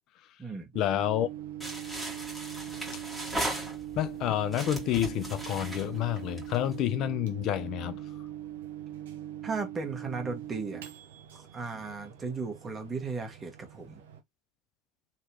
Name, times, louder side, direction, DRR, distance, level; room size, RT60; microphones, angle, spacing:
voice 1, 0.7-1.3 4.0-8.0, left 12 dB, 50° left, 0.5 m, -29 dB
Microwave oven, 0.7-14.2, right 12 dB, 80° right, 0.9 m, -42 dB
sound 1, 1.6-4.1 4.5-6.7, right 1 dB, 5° right, 1.6 m, -37 dB
voice 2, 9.4-10.8 11.3-14.0, right 4 dB, 25° right, 1.3 m, -36 dB
3.1 x 2.9 x 2.8 m
hypercardioid pair, 85°, 0 cm